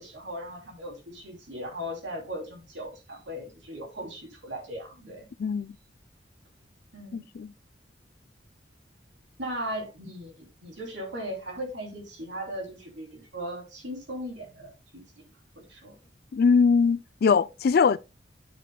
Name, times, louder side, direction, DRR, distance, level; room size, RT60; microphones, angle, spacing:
voice 1, 0.0-5.3 6.9-7.3 9.4-15.2 15.5-15.9, equal, 75° right, 3.0 m, -38 dB
voice 2, 5.4-5.8 7.1-7.5 16.3-18.0, left 5 dB, 55° left, 0.4 m, -22 dB
9.1 x 8.6 x 2.2 m
head